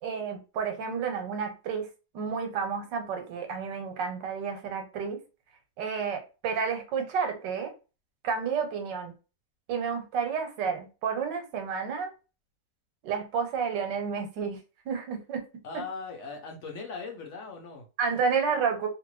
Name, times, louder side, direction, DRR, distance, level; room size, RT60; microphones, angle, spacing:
voice 1, 0.0-5.2 5.8-7.7 8.2-9.1 9.7-12.1 13.0-15.4 18.0-18.9, right 6 dB, 80° right, 1.4 m, -31 dB
voice 2, 15.6-17.9, left 4 dB, 60° left, 0.8 m, -39 dB
2.8 x 2.5 x 3.1 m
omnidirectional pair, 1.9 m